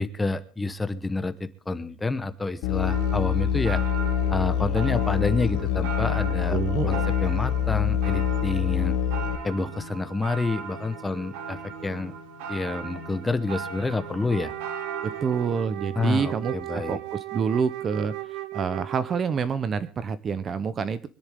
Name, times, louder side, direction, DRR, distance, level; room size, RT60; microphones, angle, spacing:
voice 1, 0.0-3.8 4.3-6.6 6.9-9.0 9.4-12.1 12.5-14.5 15.9-17.0, left 3 dB, 10° left, 11 dB, 0.9 m, -28 dB
Musical instrument, 2.6-9.4, left 9 dB, 70° left, 1.4 m, -25 dB
sound 1, 2.9-15.6, right 5 dB, 90° right, 2.7 m, -38 dB
voice 2, 6.5-7.1 15.2-21.1, right 6 dB, 25° right, 16 dB, 0.7 m, -27 dB
Wind instrument woodwind instrument, 14.3-19.4, right 17 dB, 70° right, 1.1 m, -36 dB
25.0 x 10.5 x 3.5 m, 0.39 s
cardioid pair, 170°, 0 cm